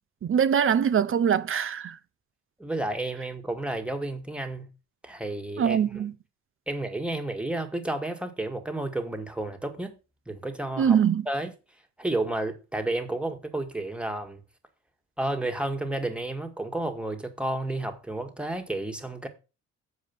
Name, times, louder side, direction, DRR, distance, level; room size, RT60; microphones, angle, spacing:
voice 1, 0.2-2.0 5.6-6.1 10.8-11.3, right 8 dB, 45° right, 0.8 m, -23 dB
voice 2, 2.6-4.7 5.0-6.0 6.7-10.0 10.3-11.0 11.3-11.5 12.0-14.4 15.2-19.3, right 2 dB, 5° right, 1.9 m, -31 dB
7.6 x 4.8 x 7.0 m
cardioid pair, 90°, 30 cm